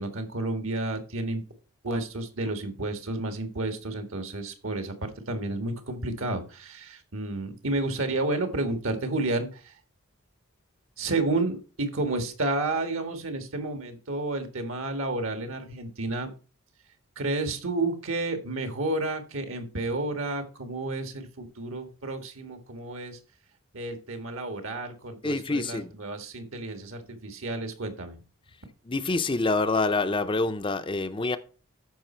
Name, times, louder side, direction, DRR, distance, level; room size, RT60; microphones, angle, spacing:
voice 1, 0.0-1.4 1.8-9.7 11.0-16.3 17.2-23.2 23.7-28.2, right 2 dB, 65° right, 1.7 m, -31 dB
voice 2, 25.2-25.9 28.9-31.4, left 3 dB, 25° left, 0.5 m, -26 dB
13.0 x 5.3 x 4.4 m
head